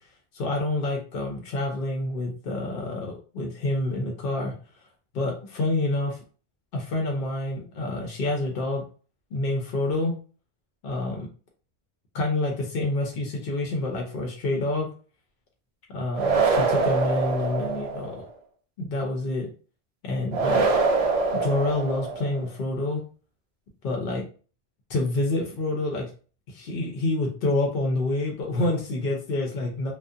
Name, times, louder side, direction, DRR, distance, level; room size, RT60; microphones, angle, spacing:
voice 1, 0.3-4.5 5.1-6.2 6.7-8.8 9.3-10.1 10.8-11.3 12.1-14.9 15.9-18.2 18.8-19.5 20.0-20.7 21.4-23.0 23.8-24.2 24.9-26.1 26.5-29.9, left 2 dB, 65° left, 1 dB, 0.7 m, -27 dB
sound 1, 16.1-18.2 20.3-22.4, right 4 dB, 55° right, 0.4 m, -24 dB
2.4 x 2.1 x 2.6 m, 0.38 s
omnidirectional pair, 1.1 m